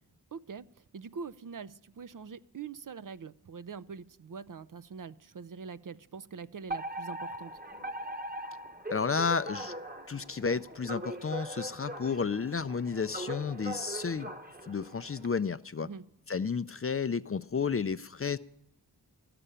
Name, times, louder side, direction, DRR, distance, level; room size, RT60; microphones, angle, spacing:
voice 1, 0.3-0.7 0.9-7.6 15.8-16.0, right 5 dB, 50° right, 15 dB, 0.5 m, -44 dB
Alarm, 6.7-15.3, right 1 dB, 20° right, 1.0 m, -41 dB
voice 2, 8.9-9.7 10.1-14.3 14.6-15.9 16.3-18.4, left 5 dB, 35° left, 13 dB, 0.4 m, -32 dB
13.0 x 6.9 x 9.9 m, 0.75 s
wide cardioid pair, 50°, 40 cm